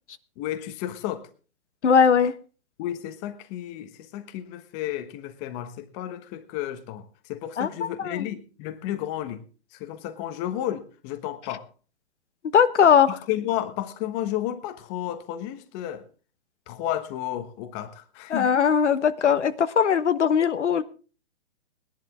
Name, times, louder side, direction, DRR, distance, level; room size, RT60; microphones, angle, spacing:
voice 1, 0.4-1.3 2.8-9.4 9.7-11.7 13.1-16.1 16.7-18.5, left 12 dB, 25° left, 1.2 m, -32 dB
voice 2, 1.8-2.3 7.6-8.2 12.5-13.1 18.3-20.8, left 7 dB, 85° left, 1.2 m, -20 dB
19.5 x 11.0 x 3.6 m
hypercardioid pair, 150°, 34 cm